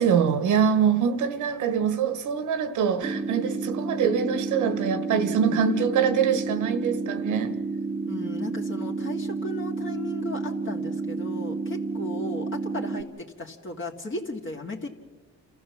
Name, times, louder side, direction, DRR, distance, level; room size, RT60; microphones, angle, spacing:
voice 1, 0.0-7.5, right 7 dB, 85° right, 1.4 m, -24 dB
sound 1, 3.0-13.0, right 4 dB, 15° right, 0.8 m, -30 dB
voice 2, 8.1-14.9, left 1 dB, 40° left, 2.0 m, -36 dB
28.5 x 14.0 x 7.3 m
cardioid pair, 90°, 30 cm